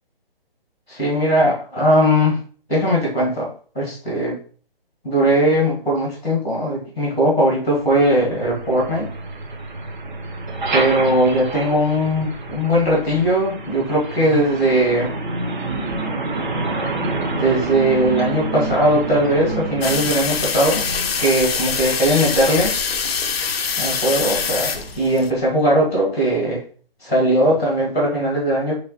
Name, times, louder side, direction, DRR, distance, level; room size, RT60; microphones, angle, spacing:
voice 1, 0.9-2.4 2.7-3.5 3.7-4.4 5.0-9.1 10.7-15.1 17.3-20.8 21.2-22.7 23.8-26.6 27.0-28.7, right 1 dB, 5° right, -16 dB, 0.4 m, -19 dB
Truck, 7.8-25.4, right 3 dB, 50° right, 0.8 m, -29 dB
sound 1, 19.8-25.3, left 6 dB, 85° left, 0.5 m, -24 dB
3.1 x 2.4 x 4.0 m, 0.43 s
figure-of-eight pair, 150°, 30 cm